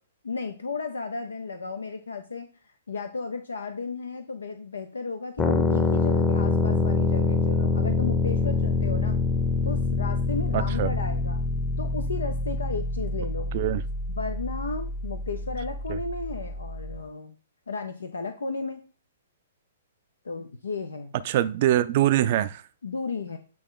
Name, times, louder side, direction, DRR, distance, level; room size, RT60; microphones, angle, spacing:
voice 1, 0.2-2.5 2.9-9.2 9.6-11.4 11.8-13.5 14.1-17.3 17.7-18.8 20.2-21.1 22.8-23.4, left 4 dB, 75° left, 0.6 m, -34 dB
sound 1, 5.4-17.0, left 3 dB, 20° left, 0.9 m, -26 dB
voice 2, 10.5-10.9 13.5-13.8 15.9-16.0 21.1-22.6, right 13 dB, 45° right, 0.4 m, -23 dB
8.5 x 3.0 x 3.8 m
figure-of-eight pair, 115°, 0 cm